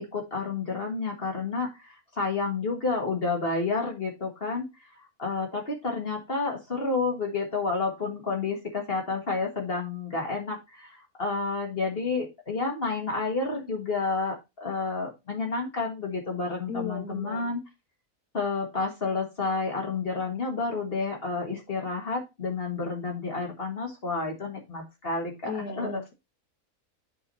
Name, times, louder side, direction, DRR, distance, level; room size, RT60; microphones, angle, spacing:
voice 1, 0.0-17.6 18.3-26.0, left 4 dB, 40° left, 1.8 m, -30 dB
voice 2, 16.7-17.5 25.4-26.1, left 4 dB, 90° left, 2.3 m, -36 dB
8.5 x 4.7 x 4.0 m
omnidirectional pair, 1.6 m